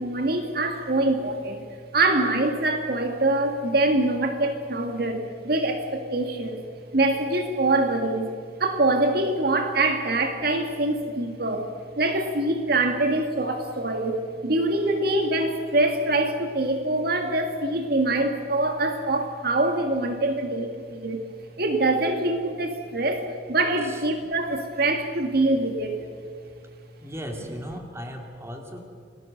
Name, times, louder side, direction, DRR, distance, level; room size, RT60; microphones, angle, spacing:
voice 1, 0.0-1.7 1.9-6.6 6.9-8.3 8.6-11.7 12.0-21.3 21.6-26.0, right 2 dB, 55° right, 5 dB, 2.2 m, -24 dB
voice 2, 27.0-28.8, equal, 15° right, 3 dB, 2.5 m, -37 dB
29.5 x 19.5 x 6.7 m, 2.2 s
head